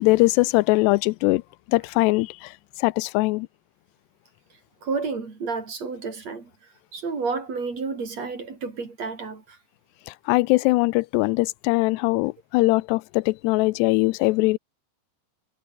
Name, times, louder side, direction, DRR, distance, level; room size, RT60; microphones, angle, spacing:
voice 1, 0.0-1.4 1.7-2.5 2.8-3.5 10.1-14.6, left 22 dB, 85° left, 2.7 m, -21 dB
voice 2, 4.8-6.5 6.9-9.6, right 4 dB, 40° right, 5.0 m, -30 dB
omnidirectional pair, 4.9 m